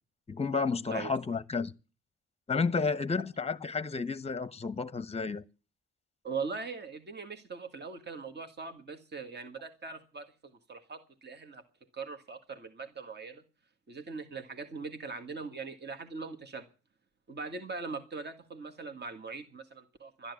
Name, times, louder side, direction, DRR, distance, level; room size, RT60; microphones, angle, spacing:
voice 1, 0.3-1.7 2.5-5.4, left 4 dB, 20° left, 1.0 m, -31 dB
voice 2, 6.2-11.6 11.9-13.4 13.9-16.7 17.3-20.3, right 4 dB, 35° right, 2.1 m, -41 dB
13.5 x 10.5 x 8.5 m
cardioid pair, 90°, 30 cm